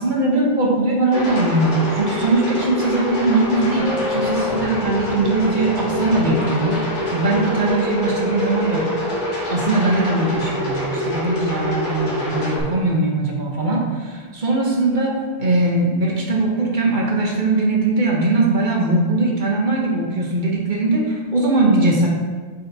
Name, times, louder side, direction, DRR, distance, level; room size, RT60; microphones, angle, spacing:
voice 1, 0.0-6.8 7.1-8.9 9.5-22.1, right 2 dB, 40° right, -2 dB, 0.9 m, -20 dB
sound 1, 1.1-12.6, left 1 dB, 60° left, 1.9 m, -25 dB
Subway metro underground, 3.8-5.9 6.2-6.3 6.6-6.8 7.1-7.5 7.8-8.8, left 4 dB, 55° right, 1.3 m, -30 dB
8.7 x 4.0 x 2.7 m, 1.5 s
omnidirectional pair, 1.4 m